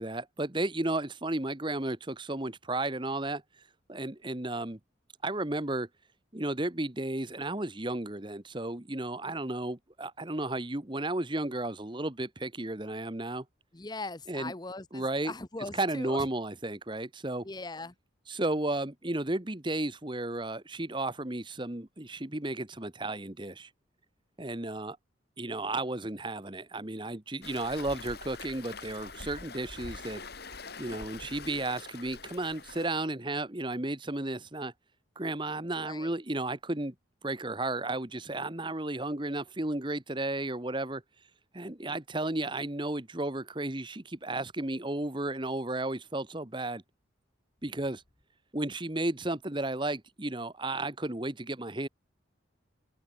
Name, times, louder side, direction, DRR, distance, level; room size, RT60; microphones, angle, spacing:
voice 1, 0.0-3.4 3.9-4.8 5.2-5.9 6.3-13.4 14.3-14.5 14.9-15.3 15.7-17.5 18.3-23.7 24.4-25.0 25.4-30.2 30.8-34.7 35.2-36.9 37.2-41.0 41.5-46.8 47.6-48.0 48.5-51.9, right 2 dB, 25° right, 1.3 m, -33 dB
voice 2, 13.7-16.3 17.4-17.9 35.8-36.1, left 3 dB, 20° left, 0.9 m, -40 dB
Waves surf, 27.4-32.9, left 4 dB, 55° left, 2.8 m, -44 dB
open air
head